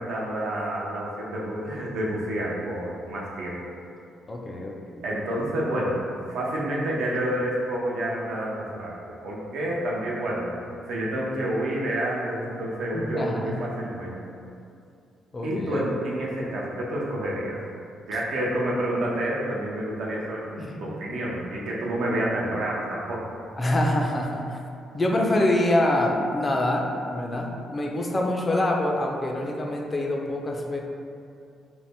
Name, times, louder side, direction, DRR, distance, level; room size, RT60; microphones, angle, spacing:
voice 1, 0.0-3.6 5.0-6.0 6.3-10.5 10.8-14.2 15.4-17.6 18.1-23.3, right 1 dB, 80° right, -4 dB, 0.5 m, -29 dB
voice 2, 4.3-5.0 12.9-13.7 15.3-15.9 20.6-20.9 23.6-24.6 24.9-30.8, left 1 dB, 25° left, 0 dB, 0.4 m, -25 dB
2.6 x 2.1 x 3.3 m, 2.5 s
cardioid pair, 90°, 0 cm